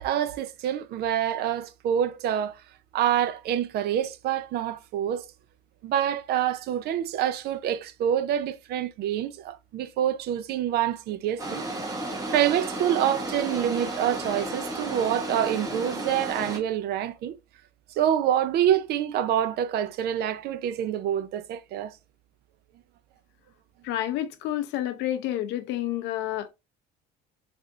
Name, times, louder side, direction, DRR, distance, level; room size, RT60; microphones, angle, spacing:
voice 1, 0.0-2.6 2.9-5.3 5.8-11.6 12.3-17.4 18.0-21.9, right 10 dB, 55° right, 0.5 m, -26 dB
sound 1, 11.4-16.6, right 1 dB, 20° right, 1.0 m, -33 dB
voice 2, 23.8-26.5, left 12 dB, 65° left, 0.5 m, -29 dB
3.4 x 2.5 x 2.7 m
cardioid pair, 110°, 19 cm